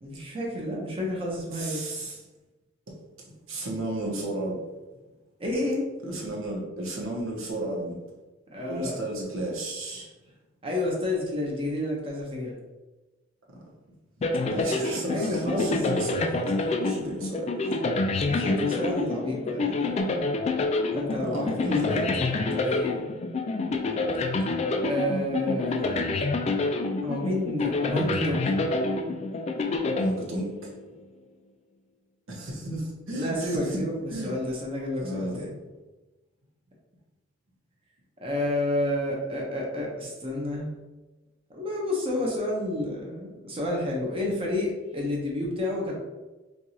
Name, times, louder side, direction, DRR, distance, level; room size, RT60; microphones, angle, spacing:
voice 1, 0.0-1.9 5.4-5.8 8.5-9.0 10.6-12.6 14.8-15.8 18.3-20.3 20.9-23.1 24.8-26.0 27.0-28.7 33.1-35.5 38.2-40.8 41.5-46.0, left 1 dB, 30° right, -2 dB, 0.7 m, -30 dB
voice 2, 1.5-2.2 3.5-4.6 6.0-8.0 8.7-10.1 14.5-16.5 16.8-17.8 21.2-22.0 29.9-30.7 32.3-33.8 34.1-34.3 35.0-35.5, right 1 dB, 85° right, -3 dB, 1.0 m, -33 dB
sound 1, 14.2-30.8, left 3 dB, 35° left, 0.3 m, -27 dB
4.5 x 2.4 x 2.7 m, 1.2 s
head